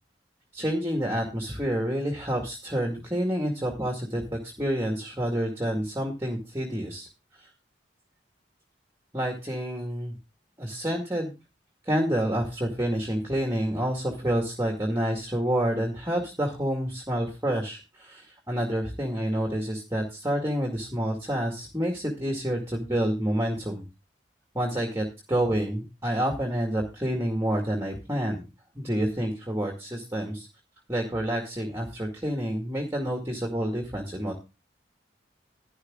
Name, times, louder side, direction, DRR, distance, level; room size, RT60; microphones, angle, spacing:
voice 1, 0.5-7.1 7.3-7.4 9.1-10.1 10.6-11.3 11.9-23.8 24.5-28.4 28.8-30.5 30.9-34.4, equal, 15° right, 1 dB, 2.0 m, -28 dB
11.5 x 11.0 x 3.7 m, 0.28 s
head